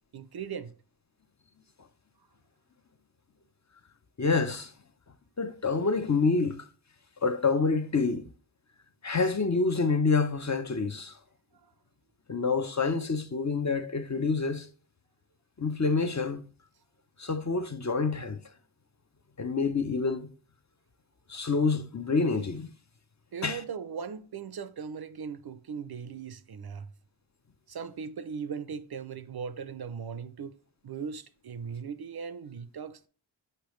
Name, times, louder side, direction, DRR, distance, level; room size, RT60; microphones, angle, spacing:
voice 1, 0.1-0.7 11.6-11.7 23.3-26.9 27.7-30.6 30.8-33.1, right 6 dB, 55° right, 0.5 m, -38 dB
voice 2, 4.2-4.7 5.4-6.7 7.2-8.3 9.0-11.2 12.3-14.7 15.6-16.5 17.2-18.4 19.4-20.3 21.3-22.7 23.4-23.6, left 4 dB, 40° left, 0.6 m, -27 dB
6.7 x 5.4 x 3.1 m
wide cardioid pair, 70°, 46 cm